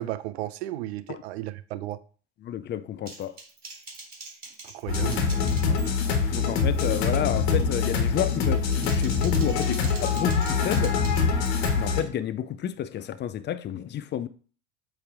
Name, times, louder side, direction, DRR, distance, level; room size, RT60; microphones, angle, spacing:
voice 1, 0.0-2.0 4.6-5.2, right 14 dB, 75° right, 0.6 m, -34 dB
voice 2, 2.4-3.4 5.7-5.8 6.3-11.0 11.8-14.3, left 10 dB, 35° left, 0.5 m, -31 dB
Typing, 3.1-6.2 6.5-6.9 7.3-7.7 8.5-11.7, right 3 dB, 30° right, 3.3 m, -44 dB
sound 1, 4.9-12.0, left 5 dB, 70° left, 1.4 m, -24 dB
8.4 x 3.3 x 3.6 m
hypercardioid pair, 85°, 32 cm